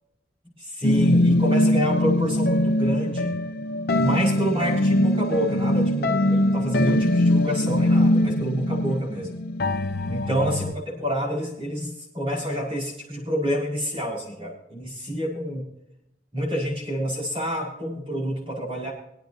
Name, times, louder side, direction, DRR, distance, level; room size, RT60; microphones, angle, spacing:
voice 1, 0.6-3.4 4.0-9.3 10.1-15.7 16.3-18.9, equal, 30° right, -4 dB, 5.6 m, -28 dB
sound 1, 0.8-10.7, left 1 dB, 50° left, 0.7 m, -22 dB
23.5 x 9.0 x 2.9 m, 0.79 s
head